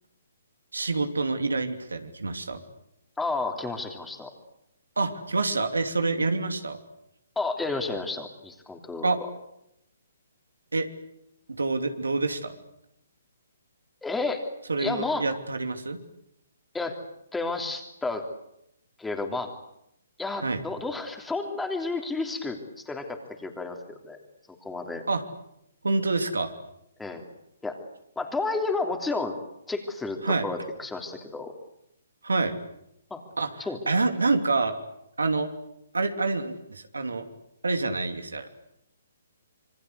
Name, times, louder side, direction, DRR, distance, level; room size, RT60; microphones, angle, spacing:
voice 1, 0.7-2.6 5.0-6.8 9.0-9.2 10.7-10.9 11.5-12.6 14.7-16.0 20.4-20.6 25.1-25.2 25.8-26.5 30.2-30.5 32.2-32.6 33.4-33.5 33.9-34.7 35.2-35.5 35.9-37.2 37.6-38.5, right 3 dB, 80° right, 7 dB, 3.0 m, -27 dB
voice 2, 3.2-4.3 7.4-9.3 14.0-14.4 14.8-15.2 16.7-17.0 17.3-18.3 19.0-19.5 20.2-24.2 24.6-25.0 27.0-27.2 27.6-27.8 28.2-29.4 29.7-31.5 33.1-33.2 33.6-33.8, left 3 dB, 5° left, 4 dB, 3.3 m, -31 dB
26.5 x 24.0 x 8.2 m, 0.80 s
figure-of-eight pair, 130°, 0 cm